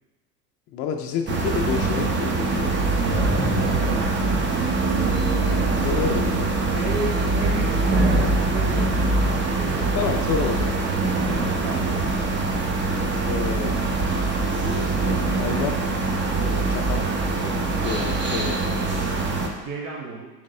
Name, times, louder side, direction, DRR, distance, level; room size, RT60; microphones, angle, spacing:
voice 1, 0.7-2.7 5.7-6.5 9.9-10.8 13.3-13.8 15.4-15.8 16.5-18.7, left 7 dB, 30° left, 3 dB, 0.4 m, -29 dB
sound 1, 1.3-19.5, right 3 dB, 25° right, 0.8 m, -23 dB
sound 2, 3.1-5.0 5.5-6.7 7.8-9.5 10.9-13.3 14.9-17.1 17.4-17.5, right 3 dB, 80° right, 2.0 m, -30 dB
voice 2, 3.7-4.8 6.7-10.2 11.6-11.9 18.4-18.6 19.6-20.3, right 4 dB, 60° right, -4 dB, 1.2 m, -34 dB
8.6 x 3.5 x 3.3 m, 1.1 s
hypercardioid pair, 80°, 49 cm